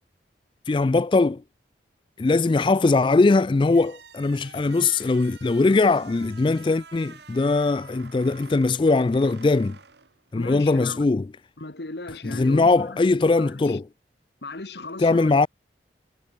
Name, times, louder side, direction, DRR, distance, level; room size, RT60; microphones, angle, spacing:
voice 1, 0.7-1.4 2.2-9.8 10.3-11.3 12.2-13.9 15.0-15.5, left 3 dB, 30° left, 0.3 m, -20 dB
sound 1, 3.6-10.6, right 5 dB, 75° right, 1.5 m, -48 dB
voice 2, 10.3-11.0 11.6-13.8 14.4-15.3, left 2 dB, 75° left, 1.6 m, -37 dB
head